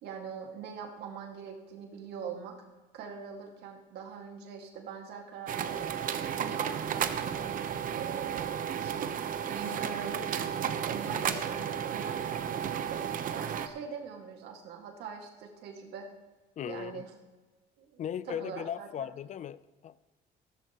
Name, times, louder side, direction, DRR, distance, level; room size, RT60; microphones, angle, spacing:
voice 1, 0.0-2.5 2.9-6.0 6.4-7.5 7.9-16.1 16.7-17.1 17.8-19.1, right 6 dB, 80° right, 2 dB, 2.1 m, -43 dB
sound 1, 5.5-13.7, right 8 dB, 55° right, 0.9 m, -33 dB
voice 2, 16.6-17.0 18.0-20.1, left 9 dB, 45° left, 17 dB, 0.5 m, -38 dB
15.0 x 13.0 x 3.0 m, 1.3 s
cardioid pair, 110°, 17 cm